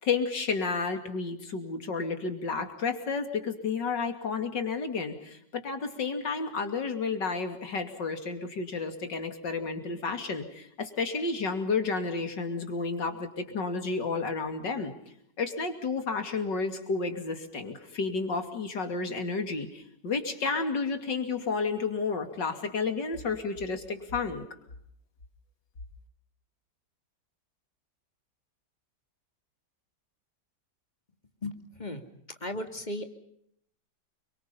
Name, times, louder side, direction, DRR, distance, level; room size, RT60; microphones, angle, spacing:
voice 1, 0.0-14.9 15.4-24.4, left 4 dB, 90° left, 6 dB, 3.3 m, -31 dB
voice 2, 31.4-32.0 32.4-33.1, left 1 dB, 25° left, 6 dB, 2.5 m, -36 dB
29.5 x 23.5 x 5.6 m, 0.72 s
omnidirectional pair, 1.9 m